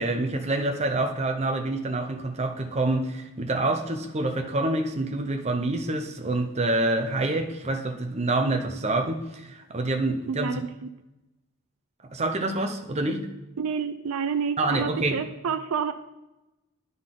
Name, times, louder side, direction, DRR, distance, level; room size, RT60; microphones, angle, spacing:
voice 1, 0.0-10.5 12.1-13.3 14.6-15.2, right 2 dB, 30° right, 5 dB, 0.7 m, -27 dB
voice 2, 10.3-10.7 13.6-15.9, right 6 dB, 85° right, 10 dB, 0.4 m, -29 dB
10.5 x 4.0 x 3.8 m, 0.99 s
head